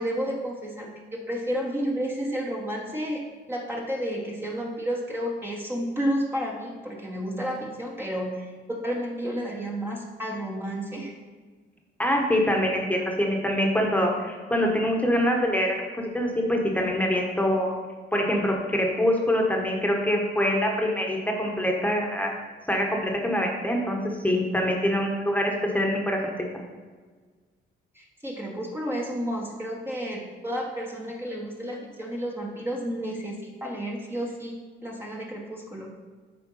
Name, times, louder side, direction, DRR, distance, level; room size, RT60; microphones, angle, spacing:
voice 1, 0.0-11.1 27.9-35.9, equal, 10° right, -2 dB, 1.3 m, -31 dB
voice 2, 12.0-15.8 16.1-17.7 18.1-22.3 22.7-24.0 24.2-26.5, equal, 5° left, 1 dB, 1.4 m, -24 dB
8.0 x 4.3 x 5.6 m, 1.5 s
cardioid pair, 90°, 20 cm